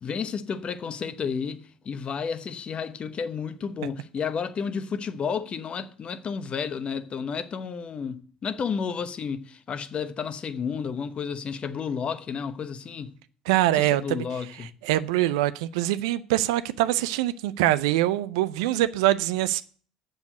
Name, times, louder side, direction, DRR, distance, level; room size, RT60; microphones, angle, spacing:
voice 1, 0.0-13.1 13.7-14.7, left 6 dB, 40° left, 1.0 m, -32 dB
voice 2, 13.5-14.3 14.6-19.6, right 15 dB, 75° right, 0.6 m, -24 dB
7.3 x 6.6 x 8.0 m
hypercardioid pair, 65°, 3 cm